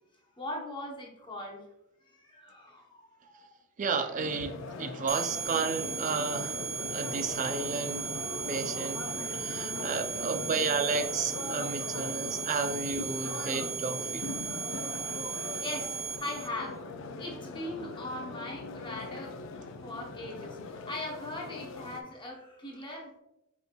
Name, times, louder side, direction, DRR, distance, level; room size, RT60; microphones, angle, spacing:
voice 1, 0.4-1.6 2.0-3.4 8.8-9.8 14.4-14.7 15.1-15.2 15.6-16.8 17.2-19.4 19.8-23.2, left 1 dB, 20° left, 0.8 m, -40 dB
voice 2, 3.8-6.6 6.9-8.1 8.5-9.1 9.3-14.3, right 4 dB, 35° right, 0.4 m, -32 dB
sound 1, 4.2-22.0, left 3 dB, 60° left, 0.4 m, -40 dB
sound 2, 5.1-16.5, right 7 dB, 10° right, 0.8 m, -36 dB
5.4 x 4.3 x 2.2 m
head